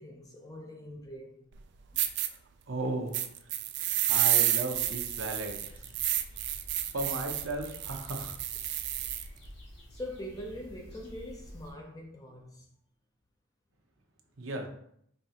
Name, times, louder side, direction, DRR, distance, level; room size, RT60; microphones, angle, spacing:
voice 1, 0.0-1.5 1.9-2.0 4.0-4.1 9.0-9.1 9.9-12.7, equal, 15° left, 0.5 m, -43 dB
sound 1, 1.5-1.6 2.0-2.3 3.1-9.3, right 12 dB, 55° right, 0.3 m, -30 dB
voice 2, 2.7-3.2 4.1-5.8 6.9-8.3 14.4-14.7, right 2 dB, 75° right, 0.8 m, -35 dB
sound 2, 4.7-11.7, equal, 55° left, 1.4 m, -49 dB
5.3 x 3.3 x 2.9 m
head